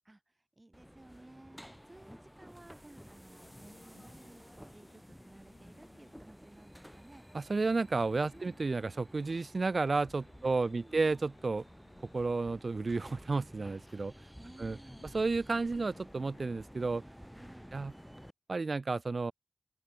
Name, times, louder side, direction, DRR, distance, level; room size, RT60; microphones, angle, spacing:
voice 1, 0.0-1.6 1.9-7.3 8.3-8.6 10.4-11.2 14.1-15.2 17.3-17.7, right 2 dB, 25° right, 4.0 m, -57 dB
sound 1, 0.7-18.3, equal, ahead, 3.1 m, -53 dB
sound 2, 3.2-16.4, left 5 dB, 85° left, 2.2 m, -65 dB
voice 2, 7.3-11.6 12.1-14.1 14.6-14.8 15.1-17.0 17.7-17.9 18.5-19.3, right 3 dB, 50° right, 0.3 m, -32 dB
open air
wide cardioid pair, 95°, 0 cm